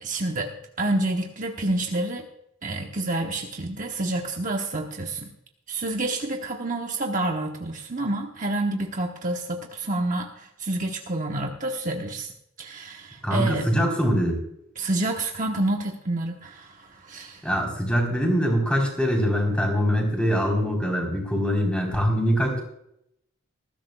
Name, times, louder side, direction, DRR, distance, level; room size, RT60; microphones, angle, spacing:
voice 1, 0.0-2.3 2.6-5.3 5.7-12.3 12.6-13.7 14.8-17.4, right 2 dB, 40° right, 2 dB, 1.0 m, -28 dB
voice 2, 13.2-14.4 17.4-22.6, equal, 5° left, 1 dB, 3.7 m, -23 dB
19.5 x 15.0 x 2.3 m, 0.76 s
head